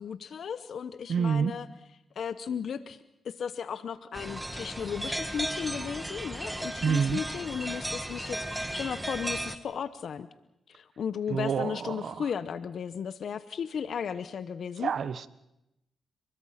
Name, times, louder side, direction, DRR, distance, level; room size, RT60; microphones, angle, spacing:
voice 1, 0.0-1.7 2.2-3.0 3.2-10.3 10.7-14.9, left 7 dB, 65° left, 13 dB, 0.9 m, -35 dB
voice 2, 1.1-1.5 6.8-7.2 11.3-12.3 14.8-15.3, right 6 dB, 65° right, 16 dB, 1.1 m, -28 dB
sound 1, 4.1-9.6, right 1 dB, 10° right, 1.6 m, -35 dB
28.5 x 21.0 x 5.8 m, 0.88 s
cardioid pair, 75°, 0 cm